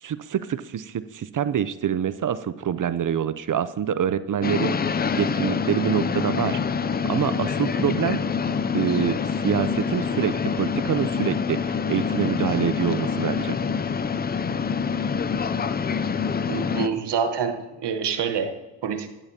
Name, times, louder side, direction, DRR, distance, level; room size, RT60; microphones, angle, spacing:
voice 1, 0.0-6.6 7.0-8.2 8.7-13.6, right 9 dB, 45° right, 14 dB, 0.5 m, -26 dB
sound 1, 4.4-16.9, left 6 dB, 25° left, 0.3 m, -26 dB
voice 2, 16.5-19.1, right 6 dB, 60° right, 8 dB, 1.1 m, -27 dB
10.5 x 8.7 x 2.8 m, 1.1 s
cardioid pair, 60°, 47 cm